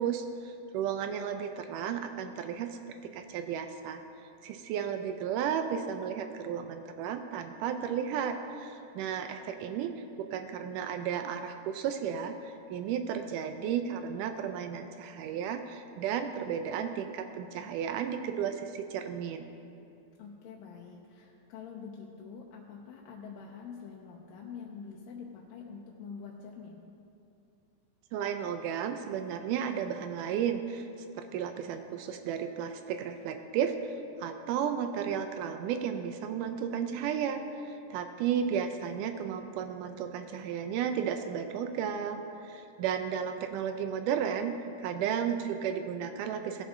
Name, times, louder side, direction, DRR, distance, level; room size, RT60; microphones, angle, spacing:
voice 1, 0.0-2.8 3.1-4.0 4.4-19.5 28.1-44.5 44.8-46.6, right 8 dB, 80° right, 7 dB, 1.9 m, -33 dB
voice 2, 20.2-26.8, left 6 dB, 80° left, -2 dB, 2.4 m, -46 dB
18.0 x 7.1 x 3.7 m, 2.7 s
omnidirectional pair, 4.1 m